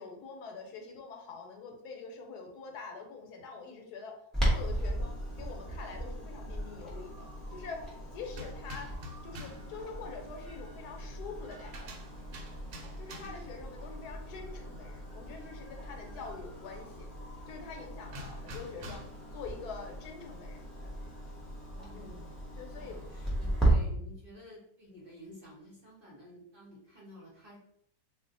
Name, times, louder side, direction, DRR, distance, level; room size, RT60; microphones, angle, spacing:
voice 1, 0.0-4.1 4.4-7.8 8.1-8.9 9.2-12.0 13.0-17.1 17.4-19.0 19.3-20.6 21.9-22.3 22.5-23.0, left 4 dB, 75° left, 2 dB, 1.1 m, -45 dB
Clock, 4.3-23.7, right 1 dB, ahead, 0.6 m, -37 dB
sound 1, 8.3-9.7 11.5-13.6 18.1-19.3, equal, 80° right, 1.1 m, -47 dB
voice 2, 13.0-13.4 21.7-22.3 22.7-27.6, left 1 dB, 45° right, -6 dB, 0.8 m, -52 dB
2.6 x 2.4 x 3.8 m, 0.71 s
omnidirectional pair, 1.7 m